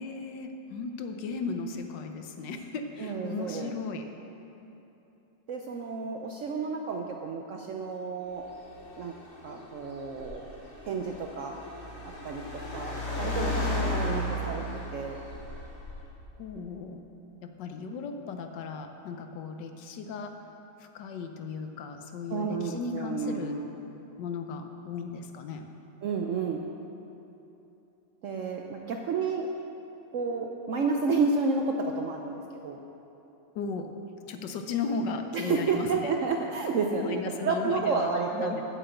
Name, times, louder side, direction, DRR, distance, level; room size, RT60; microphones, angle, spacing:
voice 1, 0.0-4.0 14.1-14.8 16.4-17.0 17.4-20.3 20.8-23.6 24.2-25.7 33.5-33.9 34.3-36.1 37.0-38.6, left 4 dB, 80° left, 6 dB, 1.4 m, -36 dB
voice 2, 3.0-3.7 5.5-8.5 9.0-9.2 9.4-10.6 10.9-11.6 12.0-15.2 22.3-23.7 26.0-26.6 28.2-29.5 30.1-32.8 35.3-38.5, right 4 dB, 65° right, 2 dB, 0.7 m, -31 dB
Car, 8.3-16.3, left 1 dB, 45° left, 2.7 m, -35 dB
7.9 x 7.7 x 8.0 m, 2.9 s
omnidirectional pair, 1.9 m